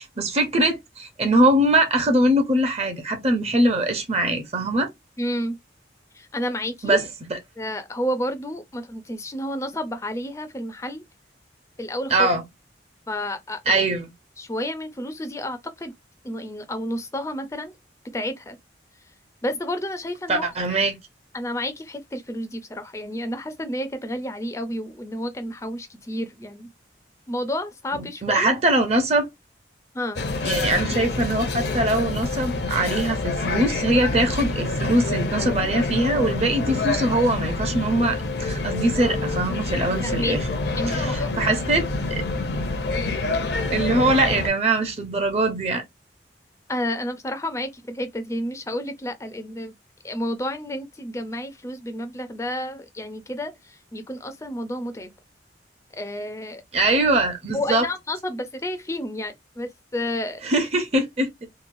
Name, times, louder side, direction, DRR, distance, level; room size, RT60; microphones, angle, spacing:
voice 1, 0.0-4.9 6.8-7.0 7.3-7.4 12.1-12.4 13.7-14.1 20.3-21.0 28.2-29.3 30.4-40.4 40.9-41.8 42.1-42.2 43.7-45.8 56.7-57.9 60.4-61.5, right 1 dB, 35° right, 0.6 m, -22 dB
voice 2, 5.2-5.6 6.1-7.0 7.6-11.0 11.8-12.3 13.1-13.8 14.4-15.9 16.2-17.7 18.1-18.6 19.4-20.5 21.3-26.7 27.3-28.5 29.9-30.2 40.0-40.4 40.8-41.3 46.7-49.7 50.0-55.1 56.0-56.6 57.5-60.4, left 1 dB, 15° left, 0.4 m, -30 dB
sound 1, 30.2-44.5, left 2 dB, 65° left, 0.6 m, -27 dB
3.0 x 2.2 x 2.5 m
head